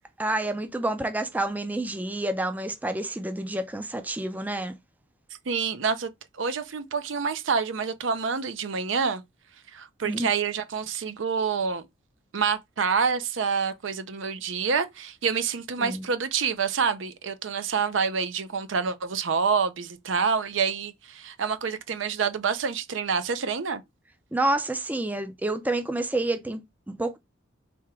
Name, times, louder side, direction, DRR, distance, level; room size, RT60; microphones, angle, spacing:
voice 1, 0.2-4.7 10.0-10.3 15.8-16.0 24.3-27.2, right 2 dB, 10° right, 0.4 m, -29 dB
voice 2, 5.5-6.1 6.4-9.2 9.7-11.9 12.3-23.8, right 5 dB, 65° right, 0.6 m, -27 dB
3.5 x 2.8 x 4.6 m
head